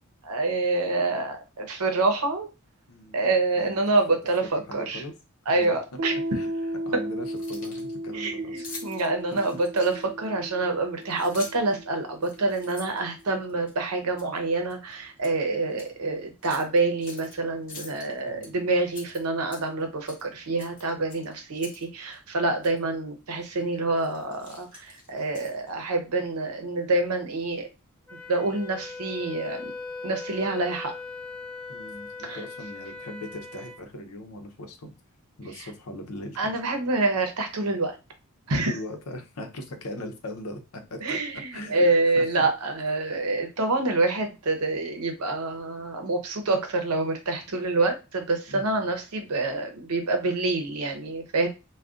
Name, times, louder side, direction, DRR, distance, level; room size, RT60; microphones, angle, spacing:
voice 1, 0.2-2.5 3.1-5.0 5.5-6.1 8.1-27.7 28.3-29.7 30.0-30.9 32.2-32.4 36.4-38.0 38.5-38.7 41.0-51.5, right 2 dB, 90° right, 5 dB, 0.8 m, -27 dB
voice 2, 2.9-3.2 3.6-3.8 4.1-4.2 4.7-5.1 5.5-5.8 6.3-6.5 6.8-8.8 9.3-9.4 18.3-18.6 31.7-34.9 35.4-36.5 38.6-41.2 41.5-41.9 42.2-42.5 48.5-48.9, left 1 dB, 75° left, 5 dB, 0.7 m, -39 dB
Piano, 6.0-13.2, equal, 70° right, 0.4 m, -35 dB
Keys jangling, 7.2-7.9 8.6-10.2 11.0-11.7 12.2-13.7 14.2-14.4 14.7-15.4 15.7-15.9 16.4-17.3 17.7-18.5 18.9-19.8 20.1-20.3 20.6-21.9 22.1-22.2 22.6-22.8 23.4-23.6 24.0-25.7, left 3 dB, 35° left, 1.2 m, -45 dB
Wind instrument woodwind instrument, 28.1-33.8, left 3 dB, 10° left, 0.4 m, -39 dB
2.4 x 2.3 x 3.5 m, 0.28 s
head